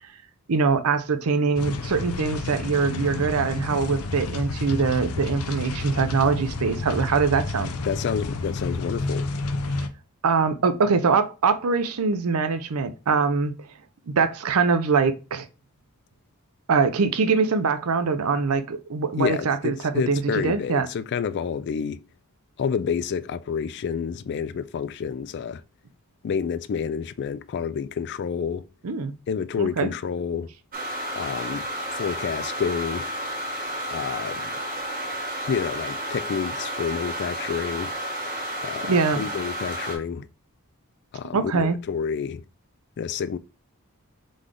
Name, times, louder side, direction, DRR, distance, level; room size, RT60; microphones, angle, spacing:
voice 1, 0.5-7.7 10.2-13.5 14.1-15.5 16.7-20.9 28.8-29.1 29.6-29.9 38.8-39.3 41.3-41.8, right 5 dB, 70° right, 0.6 m, -23 dB
sound 1, 1.6-9.9, left 3 dB, 85° left, 0.6 m, -30 dB
voice 2, 7.8-9.3 19.2-22.0 22.6-25.6 26.2-28.6 29.3-30.5 31.1-31.7 31.9-33.1 33.9-34.5 35.5-37.9 38.6-40.3 41.1-42.4 43.0-43.4, left 6 dB, 50° left, 0.3 m, -29 dB
sound 2, 30.7-40.0, equal, 40° right, 1.2 m, -31 dB
3.9 x 3.3 x 3.6 m
head